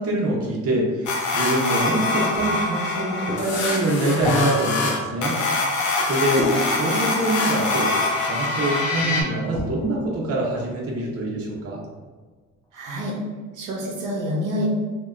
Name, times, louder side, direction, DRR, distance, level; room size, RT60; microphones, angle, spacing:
voice 1, 0.0-5.4 6.0-7.9 8.2-11.8, right 1 dB, 50° right, -3 dB, 0.8 m, -24 dB
sound 1, 1.1-9.2, left 3 dB, 80° left, 0.6 m, -24 dB
sound 2, 2.3-6.0 6.4-7.9 9.0-11.1, left 2 dB, 15° left, 0.4 m, -33 dB
voice 2, 12.7-13.1 13.5-14.7, equal, 85° right, -4 dB, 0.6 m, -27 dB
2.8 x 2.2 x 2.3 m, 1.4 s
cardioid pair, 90°, 30 cm